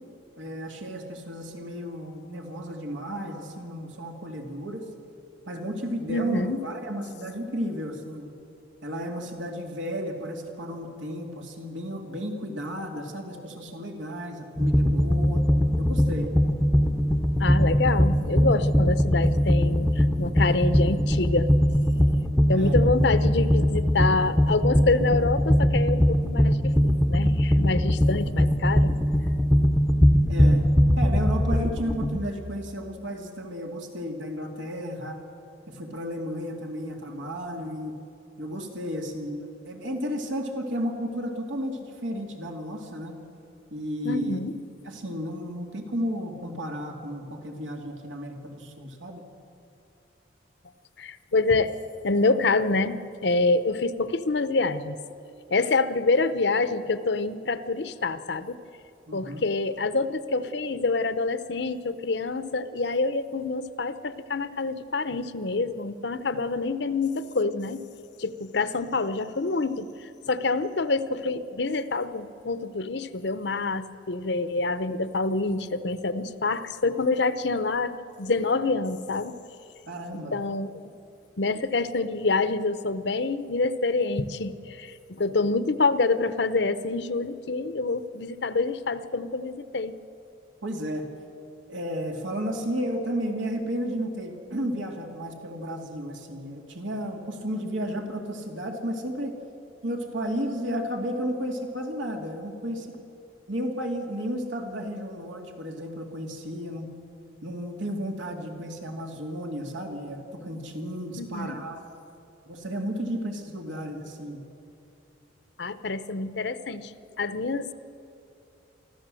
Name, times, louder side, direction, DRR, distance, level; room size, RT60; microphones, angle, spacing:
voice 1, 0.4-4.8 5.5-8.3 8.8-15.4 15.8-16.3 22.5-22.8 30.3-30.7 31.0-35.2 35.7-38.0 38.4-43.2 43.7-44.4 44.8-49.2 59.1-59.4 79.9-80.4 90.6-91.1 91.7-99.4 99.8-103.0 103.5-106.9 107.4-111.8 112.5-114.4, equal, 90° right, 3 dB, 2.6 m, -33 dB
voice 2, 6.1-6.6 17.4-21.5 22.5-28.9 44.0-44.6 51.0-51.7 52.0-55.0 55.5-58.6 59.1-67.8 68.2-79.4 80.1-80.7 81.4-90.0 111.2-111.6 115.6-116.9 117.2-117.7, left 3 dB, 70° left, 13 dB, 0.8 m, -26 dB
sound 1, 14.6-32.2, equal, 5° left, 0.7 m, -21 dB
24.5 x 14.5 x 7.7 m, 2.7 s
head